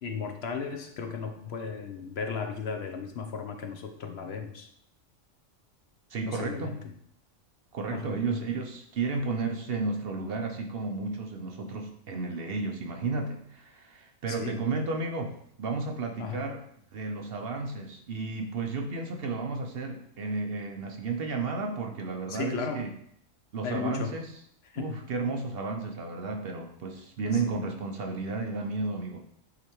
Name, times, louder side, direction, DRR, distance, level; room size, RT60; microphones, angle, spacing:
voice 1, 0.0-4.7 6.3-6.9 7.9-8.4 14.3-14.6 16.2-16.4 22.3-22.8 23.6-24.1 24.7-25.0 27.3-27.6, left 5 dB, 60° left, 5 dB, 0.8 m, -35 dB
voice 2, 6.1-6.8 7.7-16.6 16.9-22.9 23.5-24.3 24.8-29.2, right 3 dB, 55° right, 4 dB, 0.8 m, -33 dB
9.5 x 3.3 x 3.0 m, 0.68 s
omnidirectional pair, 1.3 m